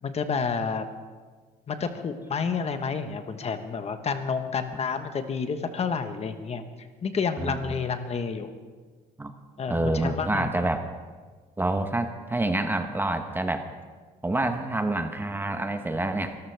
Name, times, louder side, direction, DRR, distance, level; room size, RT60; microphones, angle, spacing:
voice 1, 0.0-0.8 1.7-6.6 7.0-8.5 9.6-10.5, left 5 dB, 40° left, 8 dB, 1.3 m, -29 dB
voice 2, 9.7-10.8 11.6-13.7 14.2-16.4, right 2 dB, 10° right, 7 dB, 1.0 m, -27 dB
24.5 x 14.0 x 3.5 m, 1.4 s
cardioid pair, 110°, 17 cm